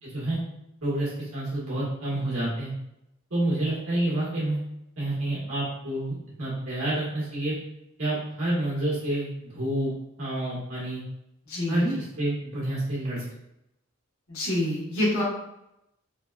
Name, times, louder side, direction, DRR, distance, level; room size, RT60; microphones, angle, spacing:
voice 1, 0.0-0.4 0.8-2.7 3.3-4.6 5.0-7.5 8.0-9.9 10.2-11.0 11.7-13.2, right 1 dB, 90° right, -7 dB, 1.5 m, -28 dB
voice 2, 11.5-12.0 14.3-15.2, left 1 dB, 80° left, -7 dB, 1.3 m, -27 dB
3.9 x 2.3 x 2.3 m, 0.84 s
head